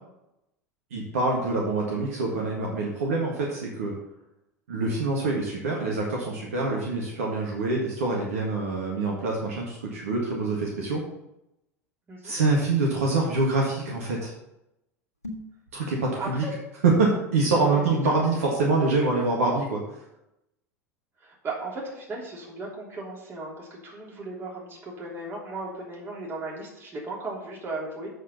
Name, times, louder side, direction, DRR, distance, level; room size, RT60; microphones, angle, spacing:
voice 1, 0.9-3.9 4.7-11.0 12.2-14.3 15.7-16.4 16.8-19.8, right 3 dB, 65° right, -2 dB, 1.8 m, -25 dB
sound 1, 15.1-15.6, left 1 dB, 85° left, 1.5 m, -39 dB
voice 2, 16.2-16.5 17.7-18.1 21.2-28.1, right 2 dB, 25° right, -3 dB, 3.2 m, -36 dB
7.3 x 6.7 x 5.5 m, 0.86 s
figure-of-eight pair, 80°, 8 cm